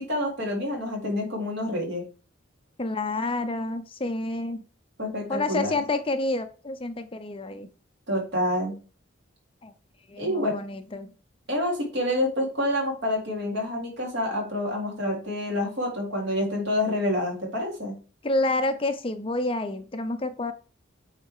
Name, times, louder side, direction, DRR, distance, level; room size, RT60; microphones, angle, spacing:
voice 1, 0.0-2.0 5.0-5.7 8.1-8.7 10.2-10.5 11.5-17.9, left 1 dB, 60° right, -1 dB, 3.9 m, -27 dB
voice 2, 2.8-4.6 5.3-7.7 9.6-9.7 10.1-11.1 18.2-20.5, left 2 dB, 25° left, 9 dB, 0.6 m, -28 dB
8.8 x 4.2 x 4.8 m, 0.36 s
head